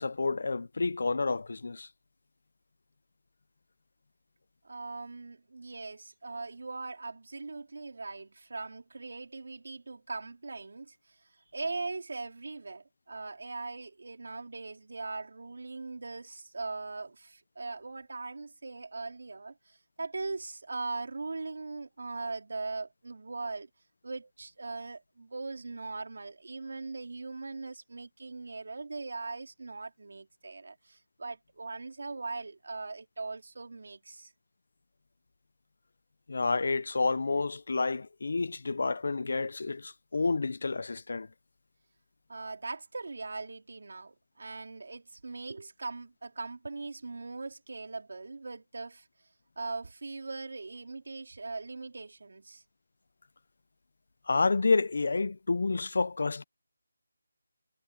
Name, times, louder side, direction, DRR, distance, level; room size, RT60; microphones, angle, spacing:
voice 1, 0.0-1.9 36.3-41.3 54.3-56.4, left 3 dB, 60° left, 0.7 m, -29 dB
voice 2, 4.6-11.2 11.5-23.7 24.0-34.3 42.3-49.1 49.6-52.6, right 3 dB, 65° right, 3.7 m, -40 dB
figure-of-eight pair, 170°, 0 cm